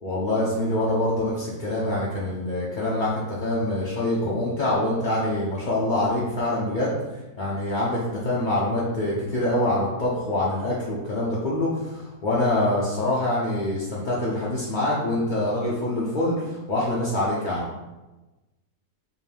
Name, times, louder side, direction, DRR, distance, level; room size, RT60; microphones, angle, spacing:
voice 1, 0.0-6.9 7.4-17.7, left 1 dB, 45° left, -7 dB, 0.6 m, -25 dB
4.5 x 2.6 x 3.4 m, 1.1 s
omnidirectional pair, 1.6 m